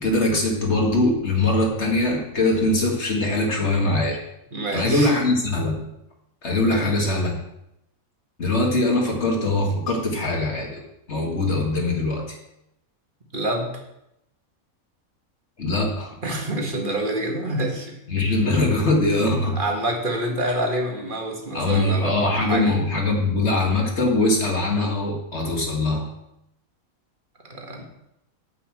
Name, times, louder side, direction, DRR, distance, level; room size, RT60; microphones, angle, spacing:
voice 1, 0.0-4.2 4.7-5.9 6.4-7.4 8.4-10.8 11.1-12.4 15.6-16.2 18.1-19.6 21.5-26.1, left 2 dB, 50° left, 0 dB, 2.1 m, -22 dB
voice 2, 4.5-5.1 6.6-6.9 13.3-13.7 16.2-18.3 19.6-22.8 27.4-27.8, right 1 dB, 35° right, 1 dB, 1.9 m, -27 dB
8.5 x 5.7 x 7.5 m, 0.83 s
omnidirectional pair, 1.5 m